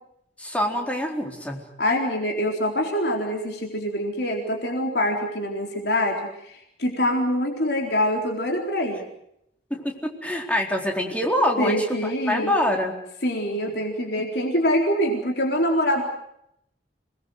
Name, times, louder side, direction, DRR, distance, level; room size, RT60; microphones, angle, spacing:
voice 1, 0.4-1.6 9.7-12.9, left 1 dB, 10° left, 1 dB, 4.1 m, -25 dB
voice 2, 1.8-9.1 11.6-12.5 13.2-16.0, equal, 65° left, 1 dB, 4.1 m, -25 dB
27.5 x 20.5 x 8.0 m, 0.77 s
head